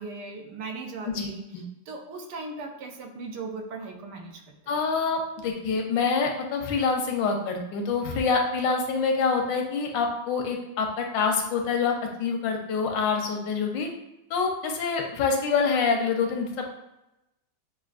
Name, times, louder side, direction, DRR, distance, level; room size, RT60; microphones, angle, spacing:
voice 1, 0.0-1.4 1.9-4.7, right 3 dB, 75° right, 3 dB, 1.1 m, -38 dB
voice 2, 1.1-1.6 4.7-13.9 14.3-16.6, left 5 dB, 85° left, 3 dB, 1.4 m, -26 dB
6.0 x 2.6 x 2.4 m, 0.92 s
omnidirectional pair, 1.9 m